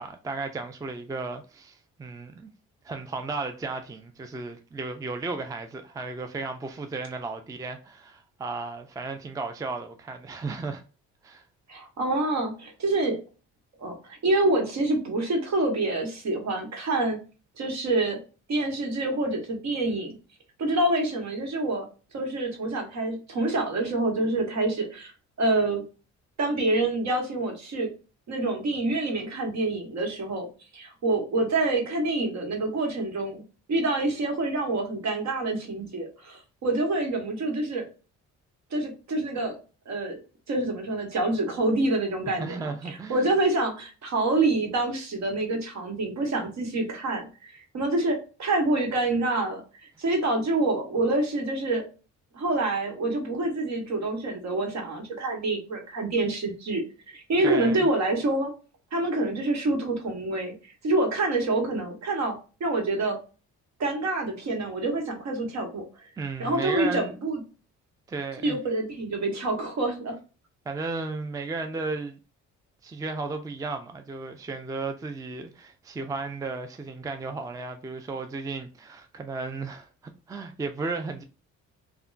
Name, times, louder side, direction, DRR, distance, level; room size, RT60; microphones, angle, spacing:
voice 1, 0.0-2.5 2.8-10.8 11.2-11.4 42.4-43.3 57.4-57.9 66.2-67.1 68.1-68.6 70.7-72.2 72.8-81.2, right 3 dB, 10° right, 0.4 m, -34 dB
voice 2, 11.7-13.2 13.8-17.2 17.6-18.2 18.5-20.2 20.6-21.9 22.1-25.1 25.4-25.8 26.4-27.9 28.3-30.5 30.7-33.4 33.7-37.8 38.7-39.6 39.9-40.2 40.5-49.6 50.0-51.8 52.3-56.8 57.1-58.5 58.9-60.5 60.8-63.2 63.8-65.8 66.4-67.4 68.4-70.2, right 2 dB, 65° right, 1.2 m, -27 dB
3.5 x 2.2 x 2.4 m
cardioid pair, 90°, 30 cm